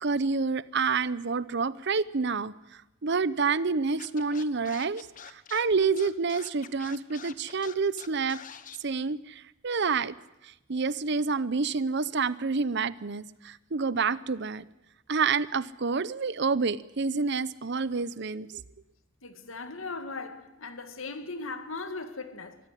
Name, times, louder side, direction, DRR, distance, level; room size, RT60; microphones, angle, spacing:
voice 1, 0.0-2.5 3.0-8.4 8.8-10.1 10.4-14.6 15.1-18.6, right 4 dB, 60° right, 0.8 m, -28 dB
Scratching (performance technique), 4.0-8.8, left 7 dB, 40° left, 1.2 m, -45 dB
voice 2, 19.2-22.6, left 3 dB, 80° left, 2.2 m, -38 dB
24.0 x 14.5 x 10.0 m
head